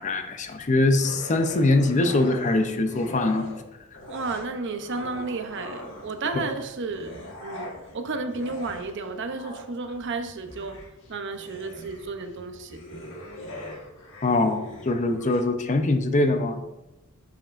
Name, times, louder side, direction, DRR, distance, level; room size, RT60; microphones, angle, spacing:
voice 1, 0.0-3.5 6.3-6.4 14.2-16.6, left 2 dB, 35° left, 8 dB, 0.6 m, -23 dB
sound 1, 1.0-3.6 3.9-6.3 6.8-15.4, left 1 dB, 60° left, 1.4 m, -42 dB
voice 2, 4.1-7.7 7.9-10.7 11.1-12.8, right 3 dB, 60° right, 7 dB, 0.7 m, -32 dB
10.0 x 5.2 x 2.5 m, 0.99 s
head